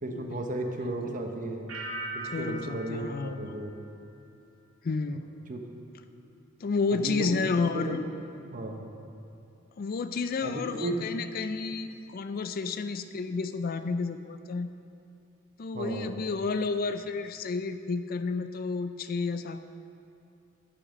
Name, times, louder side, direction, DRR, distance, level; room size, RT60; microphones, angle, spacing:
voice 1, 0.0-1.7 2.1-3.7 5.5-5.6 6.9-7.4 7.7-8.0 8.5-8.8 10.4-11.0 15.7-16.2, right 1 dB, 40° right, 3 dB, 1.0 m, -34 dB
voice 2, 0.8-1.2 2.2-3.7 4.8-5.3 6.6-8.0 9.8-14.7 15.6-19.6, left 4 dB, 45° left, 10 dB, 0.4 m, -31 dB
sound 1, 1.7-4.5 4.8-5.3, right 2 dB, 90° right, 2.1 m, -41 dB
12.0 x 8.7 x 5.2 m, 2.7 s
head